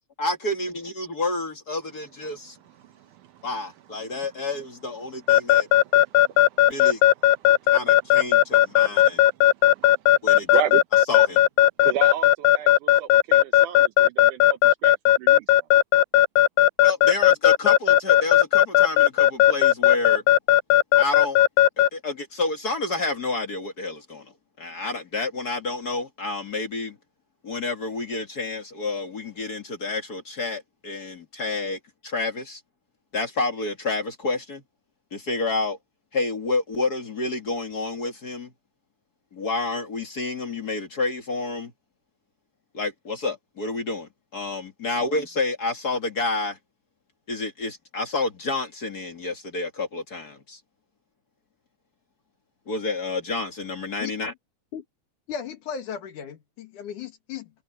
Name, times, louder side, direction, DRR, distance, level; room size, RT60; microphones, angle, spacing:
voice 1, 0.2-2.6 3.4-5.7 6.7-7.0 7.7-9.2 10.2-10.5 11.1-11.5 16.8-20.2 21.0-21.4 21.9-24.3 24.6-27.0 27.4-32.6 33.1-34.6 35.1-35.8 36.1-38.5 39.3-41.7 42.7-46.6 47.3-50.6 52.7-54.3, left 3 dB, 35° left, 2.0 m, -29 dB
Keyboard (musical) / Alarm, 5.3-21.9, left 13 dB, 90° left, 2.5 m, -16 dB
voice 2, 6.3-6.6 9.1-9.2 9.7-9.9 10.5-10.8 11.8-15.6, right 10 dB, 70° right, 2.2 m, -32 dB
voice 3, 55.3-57.5, left 7 dB, 65° left, 3.2 m, -35 dB
omnidirectional pair, 4.0 m